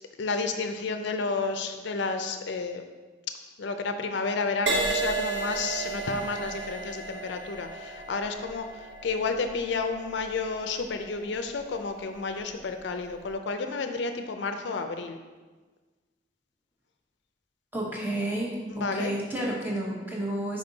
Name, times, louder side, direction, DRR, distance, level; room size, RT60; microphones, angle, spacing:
voice 1, 0.2-2.9 3.6-15.2 18.8-19.1, left 4 dB, 70° left, 6 dB, 0.4 m, -31 dB
Crash cymbal, 4.7-12.3 13.0-13.3, right 3 dB, 70° right, 1.0 m, -34 dB
voice 2, 17.7-20.6, right 1 dB, 10° right, -3 dB, 1.0 m, -31 dB
5.3 x 4.9 x 3.9 m, 1.3 s
head